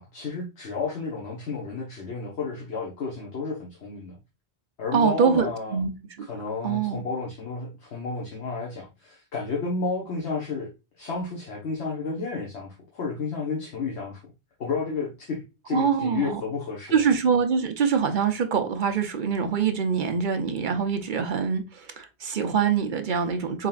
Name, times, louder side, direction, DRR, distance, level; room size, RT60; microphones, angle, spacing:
voice 1, 0.0-4.2 4.8-5.8 6.3-10.7 11.0-14.2 14.6-17.0, left 4 dB, 80° left, 1.3 m, -31 dB
voice 2, 4.9-5.9 6.6-7.0 15.7-16.4 16.9-23.7, right 6 dB, 55° right, 0.8 m, -24 dB
4.1 x 3.8 x 2.3 m
omnidirectional pair, 1.1 m